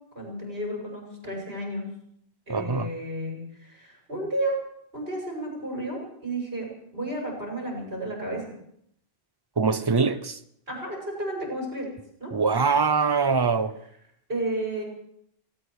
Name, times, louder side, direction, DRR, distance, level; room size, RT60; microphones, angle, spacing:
voice 1, 0.1-1.9 2.5-4.6 4.9-6.7 6.9-8.4 10.7-11.9 12.2-12.3 14.3-14.8, right 1 dB, 70° right, 0 dB, 6.5 m, -32 dB
voice 2, 2.5-2.9 9.6-10.4 12.3-13.7, right 5 dB, 25° right, 11 dB, 0.6 m, -23 dB
19.0 x 16.0 x 4.8 m, 0.73 s
omnidirectional pair, 1.1 m